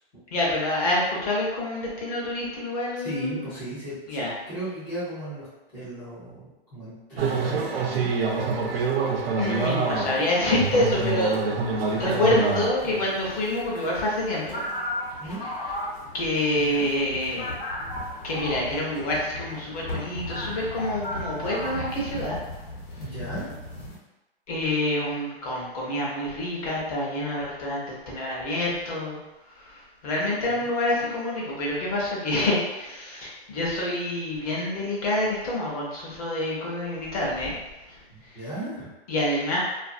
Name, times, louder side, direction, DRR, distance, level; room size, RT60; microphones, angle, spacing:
voice 1, 0.3-3.5 4.1-4.3 9.4-11.3 11.9-14.6 16.1-17.5 18.2-22.4 24.5-29.2 29.5-37.6 39.1-39.6, left 1 dB, 40° left, -4 dB, 0.8 m, -27 dB
voice 2, 2.9-4.2 4.5-8.1 12.8-13.1 15.2-15.4 16.5-16.9 23.0-23.5 30.5-30.7 38.1-38.9, right 1 dB, 5° left, -15 dB, 0.4 m, -36 dB
sound 1, 7.2-12.7, right 4 dB, 75° right, 0.6 m, -26 dB
sound 2, 12.8-24.0, left 1 dB, 85° left, 1.1 m, -36 dB
2.5 x 2.5 x 2.4 m, 1.0 s
hypercardioid pair, 155°, 30 cm